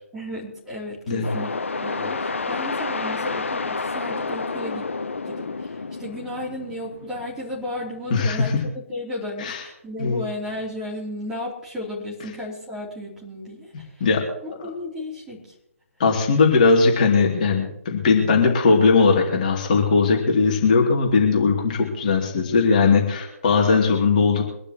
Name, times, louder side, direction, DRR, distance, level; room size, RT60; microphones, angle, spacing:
voice 1, 0.1-4.9 5.2-14.1 14.4-15.5, left 1 dB, 5° right, -5 dB, 3.0 m, -34 dB
sound 1, 1.2-8.7, left 4 dB, 55° left, 1.1 m, -30 dB
voice 2, 8.1-8.6 9.4-9.6 10.0-10.2 14.0-14.2 16.0-24.4, left 4 dB, 30° left, 0 dB, 2.6 m, -19 dB
24.0 x 12.0 x 3.0 m, 0.80 s
figure-of-eight pair, 140°, 8 cm